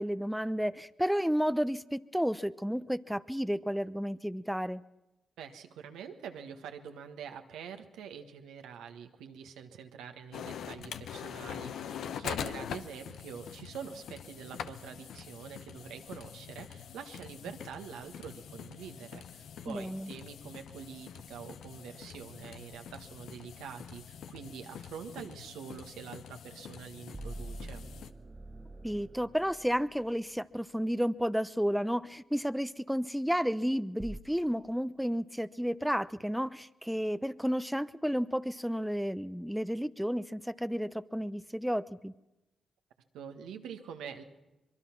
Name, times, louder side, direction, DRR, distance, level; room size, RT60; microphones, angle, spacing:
voice 1, 0.0-4.8 19.7-20.1 28.8-42.1, equal, ahead, 14 dB, 0.8 m, -32 dB
voice 2, 5.4-27.8 43.1-44.2, right 7 dB, 85° right, 5 dB, 1.5 m, -45 dB
sound 1, 10.3-28.1, left 8 dB, 75° left, 0.8 m, -44 dB
sound 2, 22.8-23.3 27.1-30.5 34.0-34.2, right 2 dB, 30° right, 1.0 m, -45 dB
23.5 x 23.0 x 6.0 m, 1.0 s
hypercardioid pair, 40°, 0 cm